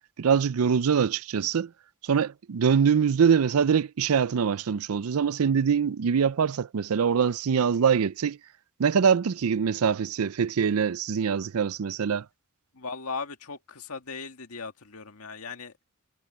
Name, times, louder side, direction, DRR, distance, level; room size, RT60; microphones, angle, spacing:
voice 1, 0.2-1.7 2.0-8.4 8.8-12.2, right 6 dB, 75° right, 0.5 m, -24 dB
voice 2, 12.8-15.7, left 4 dB, 80° left, 1.9 m, -38 dB
head